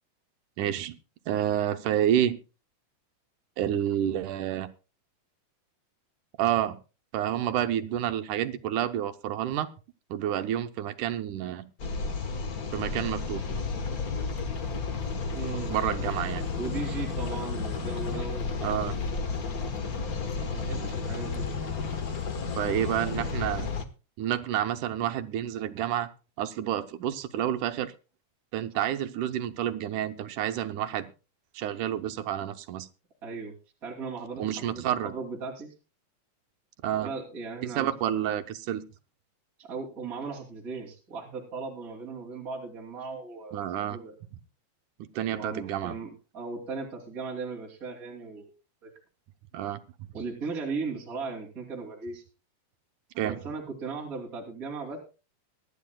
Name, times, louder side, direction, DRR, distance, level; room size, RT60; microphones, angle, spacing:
voice 1, 0.6-1.0 1.3-2.4 3.6-4.7 6.4-6.8 7.1-9.7 10.1-11.7 12.7-13.4 15.7-16.5 18.6-19.0 22.6-23.7 24.2-26.1 26.4-27.9 28.5-31.1 31.6-32.9 34.4-35.1 36.8-37.1 37.8-38.8 43.5-44.0 45.0-46.0 49.5-49.8 53.2-53.4, right 11 dB, 80° right, 8 dB, 2.4 m, -29 dB
sound 1, 11.8-23.8, left 4 dB, 65° left, 0.8 m, -32 dB
voice 2, 15.3-15.7 16.6-18.6 20.4-21.5 33.2-33.5 33.8-35.7 36.9-37.9 39.6-44.1 45.3-46.1 46.3-48.5 48.8-48.9 50.1-52.2 53.2-55.0, right 4 dB, 30° right, -2 dB, 2.9 m, -37 dB
23.5 x 11.5 x 2.3 m, 0.32 s
omnidirectional pair, 3.5 m